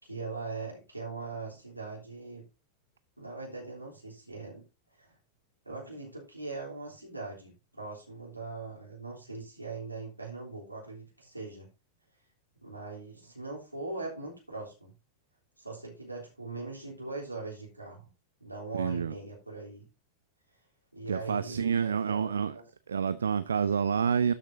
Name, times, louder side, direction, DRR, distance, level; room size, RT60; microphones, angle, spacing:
voice 1, 0.0-2.4 3.2-4.6 5.0-5.1 5.6-11.7 12.6-14.9 15.6-18.1 18.4-19.8 20.9-22.6, right 3 dB, 85° right, 3.5 m, -41 dB
voice 2, 18.7-19.1 21.1-22.6 22.9-24.3, right 7 dB, 70° right, 0.4 m, -28 dB
12.5 x 6.5 x 2.7 m
figure-of-eight pair, 90°, 0 cm